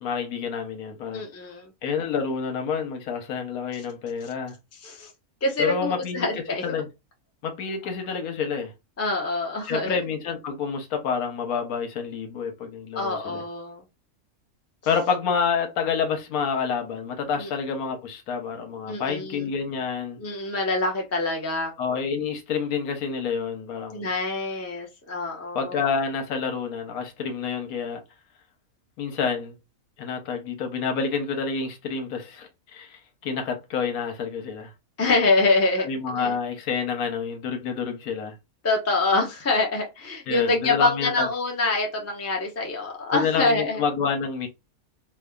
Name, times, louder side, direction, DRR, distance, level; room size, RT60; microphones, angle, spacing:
voice 1, 0.0-1.2 1.8-4.6 5.6-6.3 6.6-6.9 7.4-8.7 9.6-13.4 14.9-20.2 21.8-24.1 25.5-28.0 29.0-29.6 30.0-34.7 35.8-38.4 40.3-41.3 43.1-44.5, left 6 dB, 85° left, 1.2 m, -28 dB
voice 2, 1.1-1.7 4.8-5.1 5.4-6.6 9.0-10.0 12.9-13.8 17.4-17.5 18.9-19.5 20.2-21.7 23.9-25.7 35.0-36.3 38.6-43.8, left 3 dB, 20° left, 0.4 m, -25 dB
3.4 x 2.0 x 2.2 m
omnidirectional pair, 1.5 m